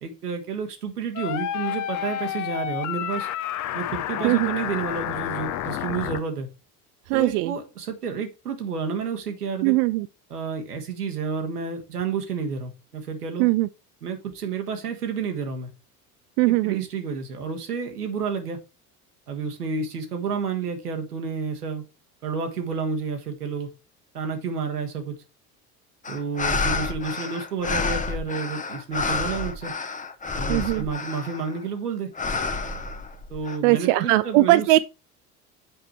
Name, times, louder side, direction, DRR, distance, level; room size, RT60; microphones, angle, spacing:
voice 1, 0.0-3.3 3.7-6.5 7.1-9.7 10.3-13.5 14.0-15.7 16.4-18.6 19.3-21.8 22.2-23.7 24.1-25.1 26.1-29.7 30.3-32.1 33.3-34.8, right 5 dB, 85° right, 1.6 m, -30 dB
sound 1, 1.2-6.2, left 11 dB, 40° left, 0.8 m, -30 dB
voice 2, 7.1-7.5 9.6-10.1 13.4-13.7 16.4-16.9 30.5-30.8 33.6-34.8, right 18 dB, 55° right, 0.5 m, -20 dB
sound 2, 26.0-31.6 32.2-33.6, left 4 dB, 15° left, 1.0 m, -29 dB
7.8 x 4.9 x 4.6 m
figure-of-eight pair, 65°, 45 cm